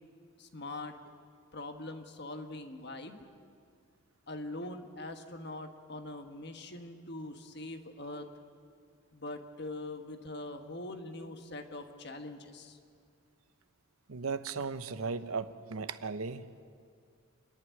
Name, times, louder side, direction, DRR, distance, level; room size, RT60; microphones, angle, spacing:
voice 1, 0.4-1.0 1.5-3.2 4.3-8.3 9.1-12.8, left 2 dB, 50° left, 6 dB, 1.5 m, -42 dB
voice 2, 14.1-16.5, right 4 dB, 85° right, 12 dB, 0.8 m, -36 dB
28.5 x 11.0 x 9.3 m, 2.2 s
head